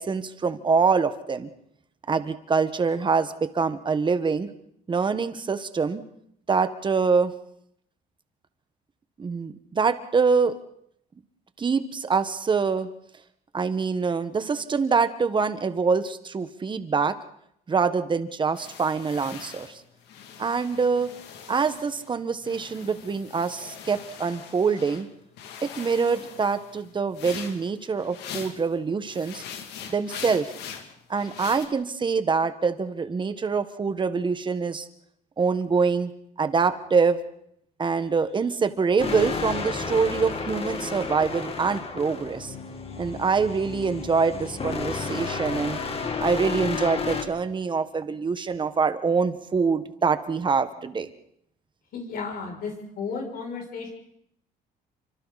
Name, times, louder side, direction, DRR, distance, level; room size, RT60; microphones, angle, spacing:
voice 1, 0.0-1.5 2.1-4.5 4.9-6.0 6.5-7.3 9.2-10.6 11.6-12.9 13.5-17.2 17.7-19.8 20.4-21.1 21.5-25.1 25.6-29.4 29.9-30.5 31.1-34.9 35.4-36.1 36.4-37.2 37.8-42.5 43.0-45.8 46.2-51.1, right 5 dB, 30° right, 10 dB, 1.5 m, -25 dB
sound 1, 18.5-22.1 22.4-25.0 25.4-28.7 29.0-31.7, left 7 dB, 80° left, 2.7 m, -42 dB
sound 2, 39.0-47.2, left 5 dB, 35° left, 2.7 m, -32 dB
voice 2, 51.9-53.9, left 4 dB, 65° left, 1 dB, 7.0 m, -33 dB
29.0 x 25.0 x 4.2 m, 0.71 s
cardioid pair, 110°, 17 cm